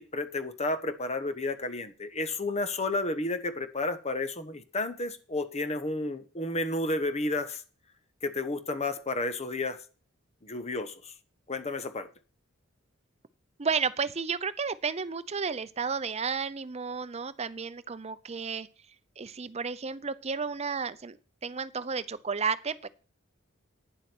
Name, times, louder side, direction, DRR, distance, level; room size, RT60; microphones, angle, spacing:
voice 1, 0.0-7.6 8.2-9.8 10.4-11.1 11.5-12.1, left 2 dB, 30° left, 11 dB, 1.1 m, -31 dB
voice 2, 13.6-18.7 19.2-21.2 21.4-22.9, right 5 dB, 30° right, 15 dB, 0.6 m, -32 dB
10.0 x 7.5 x 6.0 m, 0.36 s
head